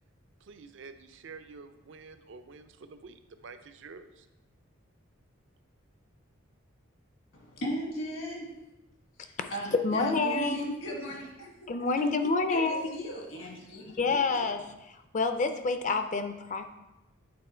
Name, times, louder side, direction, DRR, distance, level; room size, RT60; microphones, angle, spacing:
voice 1, 0.4-4.3, right 4 dB, 65° right, 9 dB, 0.5 m, -48 dB
voice 2, 7.3-8.5 9.2-11.5 12.5-14.4, equal, 70° left, -1 dB, 1.7 m, -38 dB
voice 3, 9.8-10.7 11.7-12.9 13.8-14.6 15.1-16.7, left 3 dB, 35° left, 8 dB, 0.5 m, -28 dB
8.7 x 3.7 x 4.4 m, 0.99 s
head